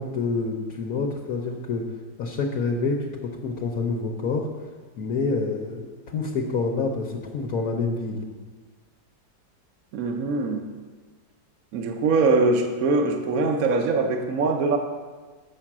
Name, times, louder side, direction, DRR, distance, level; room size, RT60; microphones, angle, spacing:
voice 1, 0.0-4.7 5.0-8.2, left 4 dB, 60° left, 0 dB, 1.1 m, -27 dB
voice 2, 9.9-10.6 11.7-14.8, right 3 dB, 60° right, 4 dB, 1.0 m, -22 dB
7.5 x 5.6 x 7.2 m, 1.4 s
omnidirectional pair, 2.0 m